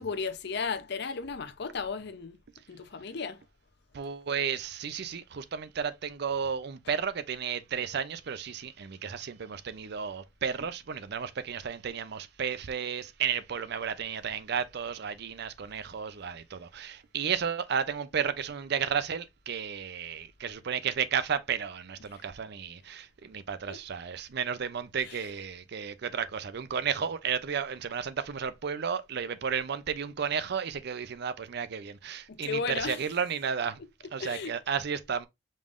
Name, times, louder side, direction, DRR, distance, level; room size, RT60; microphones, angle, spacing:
voice 1, 0.0-2.4 2.7-3.4 22.0-22.2 23.7-23.8 25.0-25.3 32.3-33.0 34.2-34.6, left 5 dB, 60° left, 0.7 m, -35 dB
voice 2, 3.9-33.8 34.1-35.3, right 7 dB, 60° right, 0.5 m, -33 dB
5.3 x 3.5 x 2.5 m
head